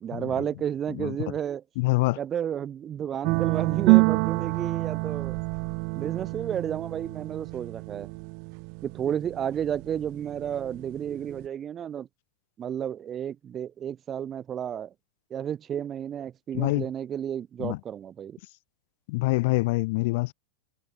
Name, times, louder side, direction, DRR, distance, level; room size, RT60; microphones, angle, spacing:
voice 1, 0.0-1.6 2.2-5.4 5.9-8.1 8.8-12.1 12.6-14.9 15.3-18.4, right 9 dB, 30° right, 1.0 m, -32 dB
voice 2, 1.8-2.2 16.5-16.9 17.6-17.8 19.1-20.3, left 23 dB, 60° left, 0.5 m, -25 dB
sound 1, 3.2-11.5, right 40 dB or more, 55° right, 0.5 m, -28 dB
hypercardioid pair, 90°, 0 cm